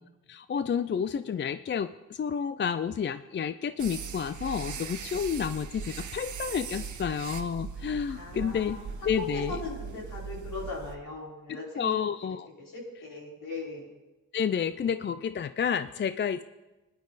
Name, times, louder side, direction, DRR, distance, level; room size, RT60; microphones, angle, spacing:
voice 1, 0.3-8.8 9.1-9.6 11.5-12.5 14.3-16.4, left 7 dB, 35° left, 13 dB, 0.4 m, -30 dB
sound 1, 3.8-11.0, right 6 dB, 60° right, 1.1 m, -39 dB
voice 2, 8.1-11.9 12.6-13.9, left 3 dB, 70° left, -4 dB, 5.2 m, -39 dB
20.0 x 10.5 x 4.1 m, 1.1 s
cardioid pair, 90°, 33 cm